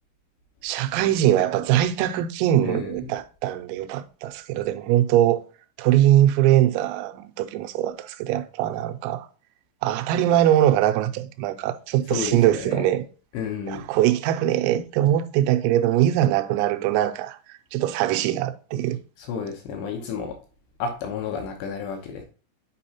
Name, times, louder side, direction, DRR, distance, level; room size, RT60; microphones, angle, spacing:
voice 1, 0.6-5.4 5.8-9.3 9.8-13.1 13.7-19.0, right 12 dB, 85° right, 3.2 m, -22 dB
voice 2, 2.6-3.1 12.1-12.9 13.3-13.9 19.2-20.4 20.8-22.2, left 6 dB, 80° left, 2.5 m, -31 dB
8.3 x 4.8 x 2.8 m
omnidirectional pair, 5.9 m